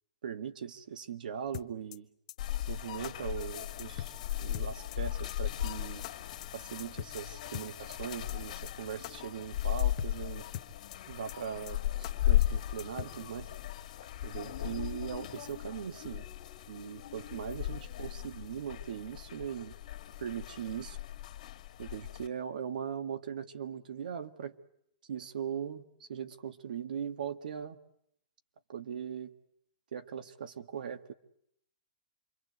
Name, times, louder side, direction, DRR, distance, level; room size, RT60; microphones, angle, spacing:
voice 1, 0.2-2.1 2.7-6.0 6.5-10.4 11.1-13.5 14.2-16.3 16.7-19.7 20.2-21.0 21.8-24.5 25.1-27.8 28.7-29.3 29.9-31.1, right 8 dB, 75° right, 8 dB, 2.0 m, -40 dB
sound 1, 1.5-2.0 2.3-2.4 2.7-2.8 3.0-3.1 3.4-3.5 3.8-4.2 4.5-5.0 5.3-5.4 5.7-5.8 6.0-6.1 6.4-6.5 6.8-7.2 7.5-8.0 8.3-8.4 8.7-8.8 9.0-9.1 9.4-9.5 9.8-10.2 10.5-11.0 11.3-11.4 11.7-11.8 12.0-12.1 12.4-12.5 12.8-13.2, left 13 dB, 40° left, 1.2 m, -42 dB
sound 2, 2.4-22.3, left 13 dB, 55° left, 2.4 m, -36 dB
28.0 x 24.0 x 8.1 m, 0.74 s
hypercardioid pair, 170°, 5 cm